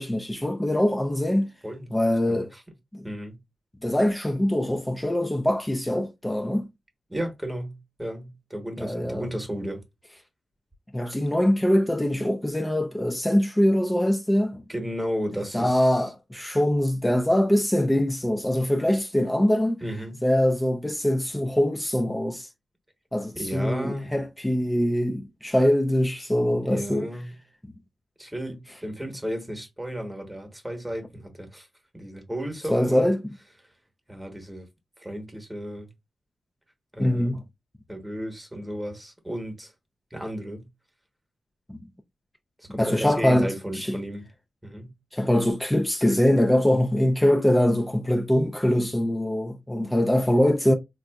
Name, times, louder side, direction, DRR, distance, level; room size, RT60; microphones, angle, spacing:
voice 1, 0.0-1.5 1.9-2.5 2.9-3.1 3.8-6.7 8.8-9.3 10.9-14.6 15.5-19.8 20.2-22.5 23.1-27.1 27.6-27.7 32.7-33.2 37.0-37.4 41.7-41.8 42.7-44.0 45.1-50.7, left 1 dB, 10° left, 0.3 m, -23 dB
voice 2, 2.3-2.6 3.0-3.4 7.1-9.8 14.7-16.1 19.8-20.2 23.3-24.1 26.6-27.4 28.2-31.7 31.9-33.1 34.1-34.7 35.0-35.9 36.9-37.4 37.9-39.7 40.1-40.7 42.6-44.3 44.6-44.9, equal, 10° right, 1.0 m, -34 dB
3.8 x 2.3 x 2.3 m
wide cardioid pair, 105°, 0 cm